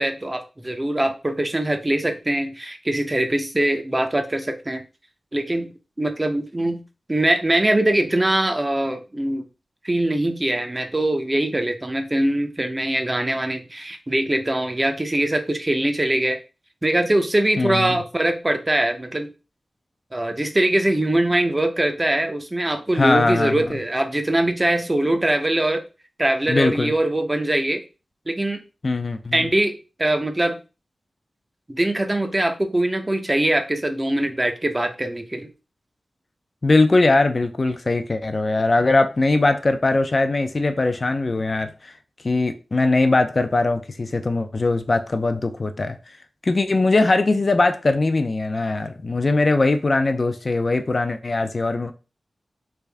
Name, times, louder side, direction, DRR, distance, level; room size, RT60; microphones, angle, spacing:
voice 1, 0.0-4.8 5.3-5.7 6.0-6.8 7.1-9.4 9.8-16.4 16.8-19.3 20.1-25.8 26.2-27.8 28.3-28.6 29.3-29.7 30.0-30.6 31.7-35.5, right 1 dB, 20° right, 0.6 m, -22 dB
voice 2, 17.6-18.0 22.9-23.6 26.5-26.9 28.8-29.5 36.6-41.9 42.2-46.0 46.4-51.9, left 2 dB, 45° left, 0.4 m, -20 dB
3.4 x 2.5 x 3.3 m
wide cardioid pair, 95°, 0 cm